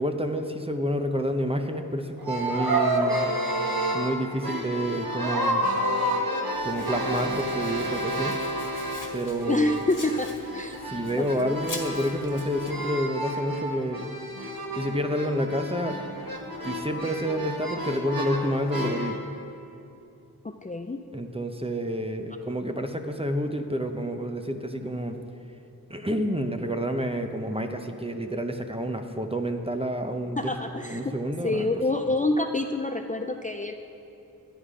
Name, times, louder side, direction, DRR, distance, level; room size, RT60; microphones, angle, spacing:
voice 1, 0.0-3.3 3.9-5.7 6.6-8.4 9.1-9.8 10.8-14.0 14.7-16.0 16.6-19.2 21.1-25.2 25.9-30.4 30.8-31.7, equal, 15° right, 5 dB, 0.7 m, -29 dB
sound 1, 2.2-9.2 9.4-19.2, right 1 dB, 70° right, 1.4 m, -30 dB
Domestic sounds home sounds, 6.5-12.9, left 2 dB, 60° left, 1.7 m, -44 dB
voice 2, 9.5-10.8 11.2-11.6 20.4-21.0 30.4-31.1 31.4-33.7, left 2 dB, 20° left, 4 dB, 0.4 m, -27 dB
11.5 x 10.5 x 5.0 m, 2.7 s
wide cardioid pair, 45°, 37 cm